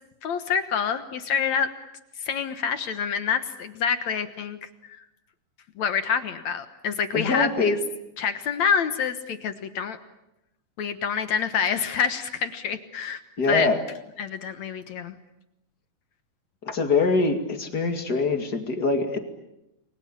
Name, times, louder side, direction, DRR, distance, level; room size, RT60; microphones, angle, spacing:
voice 1, 0.2-1.7 2.2-4.7 5.8-7.8 8.2-10.0 10.8-13.2 13.5-13.7 14.2-15.1, left 7 dB, 60° left, 10 dB, 2.2 m, -27 dB
voice 2, 7.1-7.8 13.4-13.8 16.6-19.2, left 3 dB, 30° left, 6 dB, 2.5 m, -23 dB
29.5 x 23.0 x 8.7 m, 0.88 s
omnidirectional pair, 4.3 m